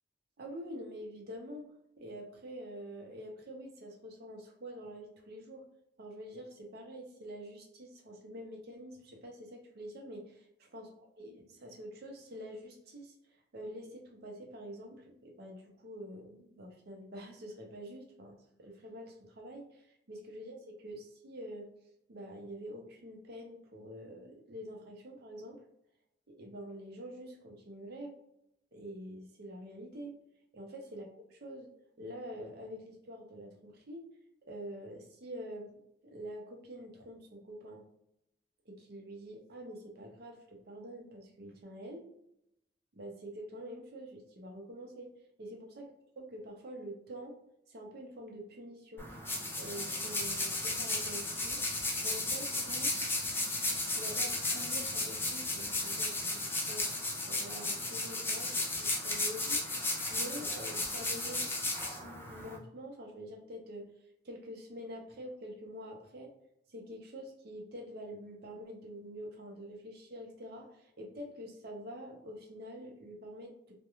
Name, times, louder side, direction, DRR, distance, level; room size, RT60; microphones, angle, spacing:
voice 1, 0.4-1.7 2.0-5.6 6.0-10.5 10.7-10.9 11.2-13.1 13.5-21.7 22.1-25.6 26.3-28.1 28.7-30.1 30.5-31.7 32.0-34.0 34.5-35.7 36.0-37.8 38.7-42.0 42.9-45.1 45.4-45.9 46.2-47.4 47.7-49.1 49.5-51.7 52.0-52.9 53.9-56.9 57.2-59.7 60.1-61.5 61.9-63.9 64.2-66.3 66.7-73.7, equal, 60° right, 1 dB, 0.6 m, -46 dB
sound 1, 49.0-62.6, left 2 dB, 15° left, 0.5 m, -34 dB
2.3 x 2.1 x 2.9 m, 0.76 s
head